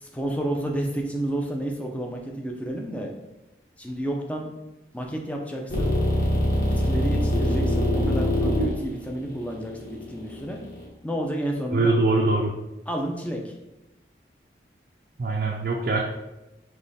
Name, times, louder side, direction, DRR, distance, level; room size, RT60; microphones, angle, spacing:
voice 1, 0.0-3.1 3.8-4.5 4.9-5.9 6.7-10.6 11.0-12.0 12.9-13.5, right 1 dB, 10° left, 1 dB, 0.5 m, -30 dB
sound 1, 5.7-10.8, left 1 dB, 50° left, 1.2 m, -24 dB
voice 2, 11.7-12.5 15.2-16.0, right 2 dB, 50° right, -1 dB, 0.4 m, -22 dB
3.5 x 3.1 x 4.0 m, 0.96 s
head